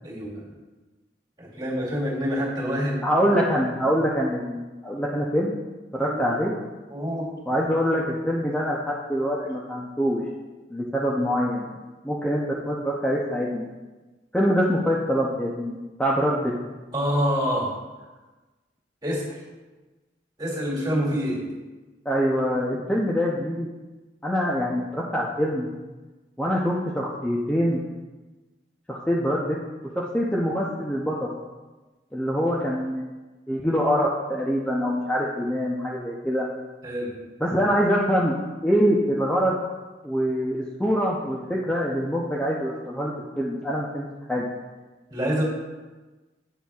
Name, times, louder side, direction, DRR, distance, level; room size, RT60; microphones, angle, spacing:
voice 1, 0.0-0.5 1.4-3.0 6.0-6.2 6.9-7.3 16.9-17.8 19.0-19.3 20.4-21.5 36.8-37.1 45.1-45.4, equal, 20° right, -6 dB, 2.4 m, -26 dB
voice 2, 3.0-5.5 5.9-6.5 7.5-10.2 10.7-11.8 12.0-13.7 14.3-16.5 22.1-23.7 24.2-25.7 26.4-27.8 28.9-29.6 29.9-31.3 32.1-33.1 33.5-36.4 37.4-38.3 38.6-39.6 40.0-44.5, equal, 5° left, -5 dB, 0.6 m, -24 dB
9.2 x 6.7 x 2.4 m, 1.2 s
head